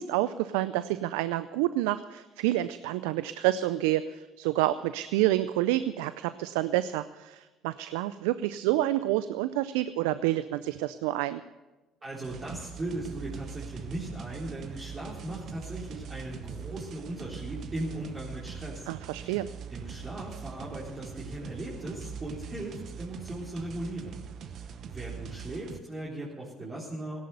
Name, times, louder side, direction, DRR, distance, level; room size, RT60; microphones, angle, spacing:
voice 1, 0.0-11.4 18.9-19.5, right 15 dB, 80° right, 14 dB, 0.4 m, -28 dB
voice 2, 12.0-19.4 19.7-24.2 24.5-27.2, right 1 dB, 30° right, -6 dB, 3.8 m, -38 dB
sound 1, 12.2-25.8, right 7 dB, 55° right, 1.0 m, -42 dB
16.5 x 11.0 x 6.9 m, 1.1 s
hypercardioid pair, 65°, 0 cm